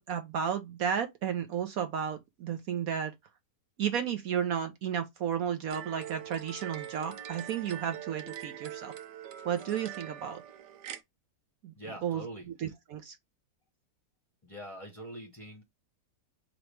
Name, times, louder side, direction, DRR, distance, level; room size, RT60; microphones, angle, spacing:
voice 1, 0.0-3.1 3.8-8.9 9.4-10.4 11.6-11.7 12.0-12.2 12.6-13.2, right 8 dB, 65° right, 1.0 m, -33 dB
sound 1, 5.7-11.0, right 10 dB, 85° right, 1.4 m, -43 dB
voice 2, 11.8-12.7 14.4-15.6, right 1 dB, 25° left, 1.0 m, -44 dB
5.1 x 3.0 x 3.1 m
omnidirectional pair, 1.8 m